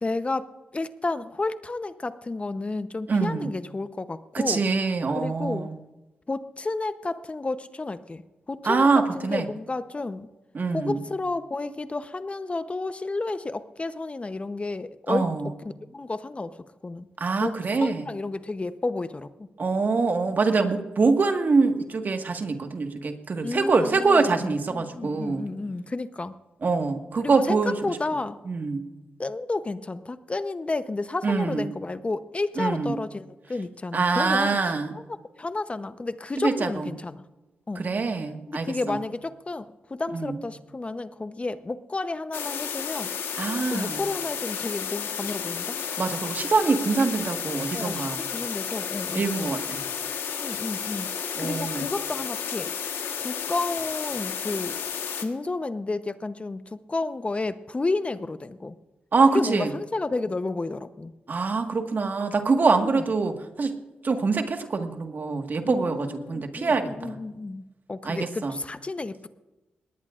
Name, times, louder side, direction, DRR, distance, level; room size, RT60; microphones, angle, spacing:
voice 1, 0.0-4.7 5.1-5.7 6.3-8.2 8.5-10.3 10.7-15.3 15.9-16.6 16.8-17.1 17.4-19.5 23.4-26.3 27.2-28.4 29.2-34.6 34.9-35.0 35.4-37.2 37.7-37.8 38.5-43.1 43.7-45.8 47.7-49.5 50.4-52.7 53.2-54.8 55.2-58.7 59.3-61.1 62.8-63.0 65.6-67.6 67.9-69.3, left 3 dB, 35° left, 12 dB, 0.8 m, -31 dB
voice 2, 3.1-3.5 4.3-5.8 8.6-9.4 10.5-11.0 15.1-15.5 17.2-18.0 19.6-25.4 26.6-28.0 28.4-28.9 31.2-31.7 32.6-32.9 33.9-35.0 36.4-36.9 37.7-39.0 40.1-40.4 43.4-44.0 46.0-48.3 49.1-49.8 51.3-51.9 59.1-59.7 61.3-63.8 64.0-67.2 68.0-68.6, right 4 dB, 55° right, 6 dB, 1.6 m, -24 dB
sound 1, 42.3-55.3, left 7 dB, 85° left, 1.3 m, -32 dB
19.5 x 19.0 x 2.5 m, 1.1 s
supercardioid pair, 50°, 4 cm